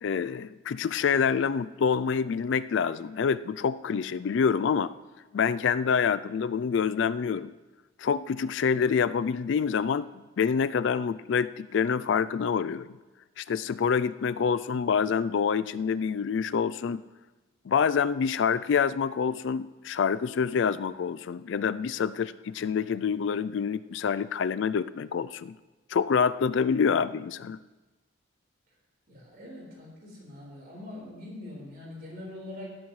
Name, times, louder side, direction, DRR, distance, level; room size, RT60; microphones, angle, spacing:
voice 1, 0.0-4.9 5.3-7.5 8.0-10.1 10.4-12.9 13.4-17.0 17.7-25.5 25.9-27.6, left 6 dB, 60° left, 15 dB, 0.3 m, -26 dB
voice 2, 29.1-32.8, left 1 dB, 50° right, -3 dB, 4.4 m, -43 dB
17.5 x 12.0 x 3.2 m, 1.2 s
head